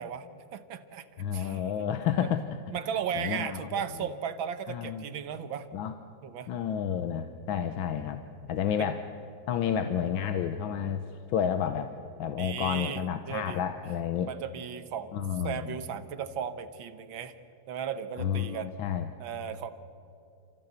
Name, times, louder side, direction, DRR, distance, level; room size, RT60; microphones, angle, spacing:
voice 1, 0.0-1.1 1.3-1.6 2.2-2.4 2.7-5.7 6.2-6.5 8.8-9.0 12.4-13.6 14.2-15.2 15.4-17.3 17.7-18.7 19.2-19.7, right 8 dB, 75° right, 11 dB, 1.8 m, -36 dB
voice 2, 1.2-2.4 3.2-4.1 4.7-5.0 5.7-5.9 6.5-8.2 8.5-9.0 9.5-11.9 12.2-14.3 15.1-15.8 18.2-19.1, left 8 dB, 80° left, 9 dB, 1.6 m, -30 dB
28.5 x 15.0 x 8.1 m, 2.8 s
omnidirectional pair, 2.2 m